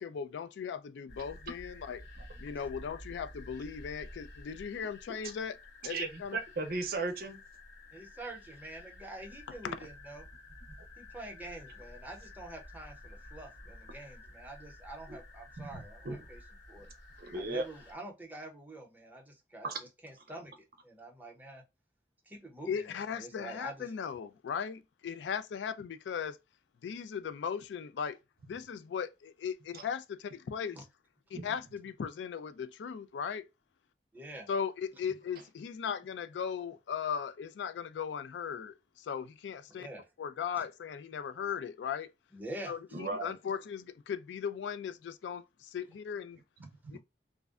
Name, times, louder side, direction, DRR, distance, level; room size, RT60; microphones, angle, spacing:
voice 1, 0.0-2.0 2.4-5.6 5.8-5.9 6.2-6.4 9.6-9.7 22.7-26.4 26.8-28.2 28.5-30.8 31.3-33.4 34.5-39.9 40.2-42.1 42.7-46.4 46.9-47.0, left 7 dB, 80° left, 0.3 m, -38 dB
sound 1, 1.1-18.0, left 2 dB, 60° left, 1.2 m, -51 dB
voice 2, 5.8-7.4 15.1-15.2 15.6-16.2 17.2-17.6 19.6-19.8 29.7-29.8 31.3-31.5 42.9-43.3 46.6-47.0, right 3 dB, 55° right, 0.6 m, -37 dB
voice 3, 7.9-10.2 11.0-16.4 16.7-16.9 17.3-20.5 20.8-21.6 22.3-23.9 30.8-30.9 34.1-34.5 39.7-40.1 40.6-40.7 42.3-42.7, right 2 dB, 10° right, 0.7 m, -46 dB
2.5 x 2.1 x 2.3 m
head